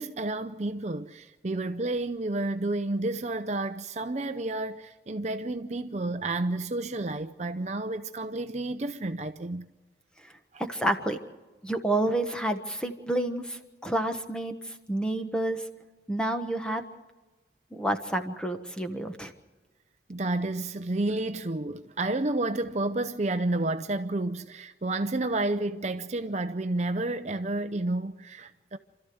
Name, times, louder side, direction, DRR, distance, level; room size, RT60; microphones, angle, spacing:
voice 1, 0.0-9.7 10.5-10.6 20.1-28.8, right 2 dB, 40° right, 0.6 m, -30 dB
voice 2, 10.7-11.2 11.6-14.5 14.9-15.6 16.1-16.8 17.7-19.3, right 1 dB, 5° left, 1.3 m, -29 dB
28.0 x 13.5 x 7.9 m
head